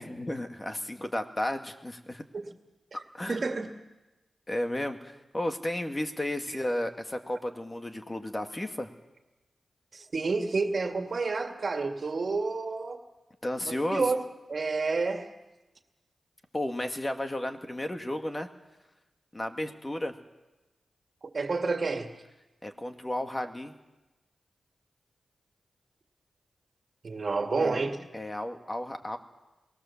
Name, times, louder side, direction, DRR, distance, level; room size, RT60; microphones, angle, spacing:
voice 1, 0.0-2.2 3.1-3.4 4.5-8.9 13.4-14.1 16.5-18.5 19.3-20.1 22.6-23.7 27.6-27.8 28.1-29.2, left 1 dB, 25° left, 6 dB, 2.0 m, -33 dB
voice 2, 3.3-3.7 6.5-6.6 9.9-13.0 13.7-14.2 14.5-15.3 21.3-22.1 27.0-28.0, right 4 dB, 55° right, 5 dB, 2.2 m, -29 dB
23.5 x 18.5 x 7.3 m, 1.1 s
cardioid pair, 50°, 0 cm